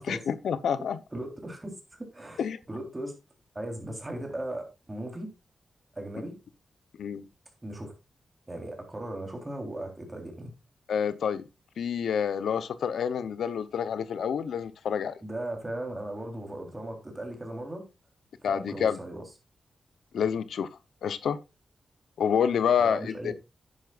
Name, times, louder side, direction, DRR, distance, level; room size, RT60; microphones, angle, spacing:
voice 1, 0.0-1.0 2.4-2.6 7.0-7.2 10.9-11.5 11.8-15.2 18.4-19.0 20.1-20.7 21.0-21.4 22.2-23.3, left 7 dB, 90° left, 0.8 m, -28 dB
voice 2, 1.1-2.4 2.7-3.2 3.5-5.3 5.9-6.4 7.6-7.9 8.5-10.5 15.2-17.8 18.4-19.3 22.8-23.3, right 1 dB, 20° right, 3.5 m, -37 dB
11.0 x 9.9 x 2.5 m
wide cardioid pair, 95°, 0 cm